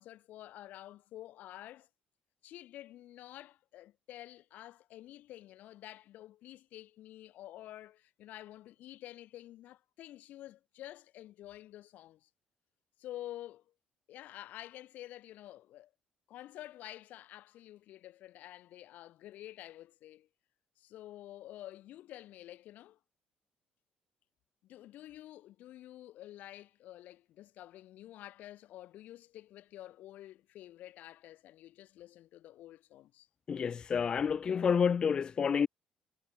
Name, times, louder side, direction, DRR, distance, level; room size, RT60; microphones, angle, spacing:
voice 1, 0.0-1.9 2.4-12.3 13.0-13.6 14.1-15.9 16.3-20.3 20.8-23.0 24.6-33.3, left 14 dB, 70° left, 1.1 m, -49 dB
voice 2, 33.5-35.7, left 6 dB, 30° left, 0.4 m, -29 dB
cardioid pair, 155°, 3 cm